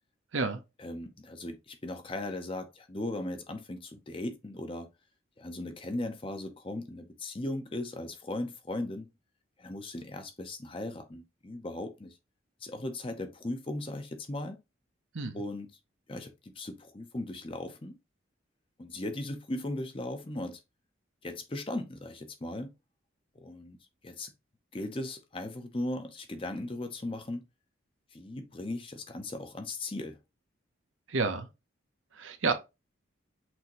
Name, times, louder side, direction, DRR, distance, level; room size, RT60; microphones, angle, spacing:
voice 1, 0.8-4.9 5.4-9.1 9.6-12.2 12.6-14.6 15.3-15.7 16.1-18.0 18.8-20.6 21.2-22.7 23.3-23.8 24.0-24.3 24.7-27.4 28.1-30.2, left 1 dB, 25° left, 0.7 m, -37 dB
voice 2, 31.1-31.5 32.1-32.5, right 4 dB, 80° right, 0.8 m, -30 dB
6.1 x 2.8 x 3.0 m
head